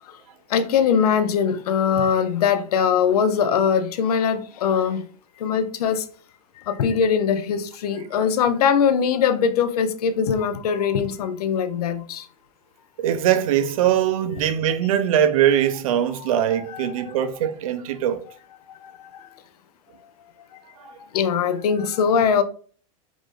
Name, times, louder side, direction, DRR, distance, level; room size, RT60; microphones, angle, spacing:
voice 1, 0.5-5.0 5.4-6.0 6.7-12.2 16.1-17.0 21.1-22.4, left 7 dB, 85° left, 0.6 m, -21 dB
voice 2, 13.0-18.2, right 10 dB, 65° right, 0.6 m, -21 dB
4.8 x 2.6 x 3.7 m
supercardioid pair, 180°, 19 cm